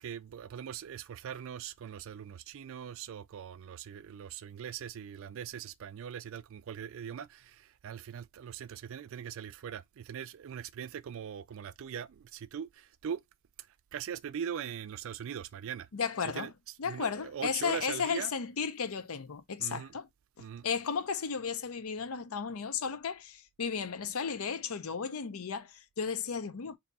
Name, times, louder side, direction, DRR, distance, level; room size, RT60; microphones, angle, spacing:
voice 1, 0.0-13.2 13.6-15.9 16.3-16.5 16.8-18.3 19.6-19.9 20.4-20.7, right 8 dB, 65° right, 0.4 m, -41 dB
voice 2, 15.9-16.5 16.8-20.1 20.6-26.8, left 6 dB, 75° left, 0.6 m, -34 dB
3.5 x 2.7 x 4.0 m
head